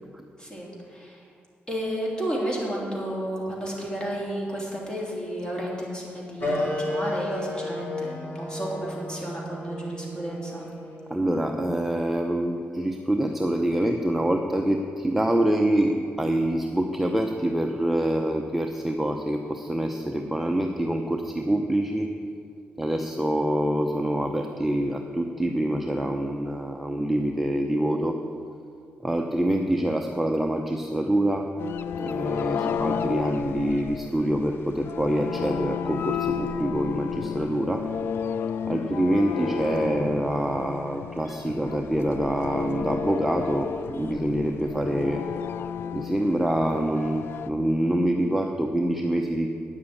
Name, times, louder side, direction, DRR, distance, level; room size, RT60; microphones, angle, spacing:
voice 1, 0.4-1.2 1.7-10.7 32.4-32.7 38.7-38.9, right 1 dB, 20° left, -3 dB, 3.1 m, -32 dB
sound 1, 6.4-11.5, left 1 dB, 50° left, 3.4 m, -32 dB
voice 2, 11.1-22.1 22.8-28.2 29.0-31.5 32.0-37.9 38.7-45.2 45.9-49.5, right 1 dB, 5° right, 3 dB, 0.6 m, -26 dB
sound 2, 31.6-47.5, left 7 dB, 70° left, 0.4 m, -32 dB
9.5 x 7.5 x 8.3 m, 2.3 s
cardioid pair, 105°, 4 cm